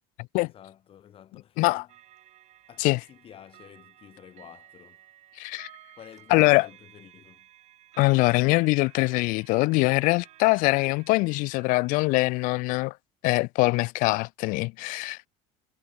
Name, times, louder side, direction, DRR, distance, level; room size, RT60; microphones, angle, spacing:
voice 1, 0.4-1.9 2.7-5.0 6.0-7.5, left 10 dB, 35° left, 7.6 m, -50 dB
sound 1, 1.9-12.0, right 14 dB, 45° right, 5.7 m, -55 dB
voice 2, 5.4-5.7 6.3-6.7 8.0-12.9 13.2-15.3, left 24 dB, 60° left, 0.5 m, -23 dB
cardioid pair, 145°, 16 cm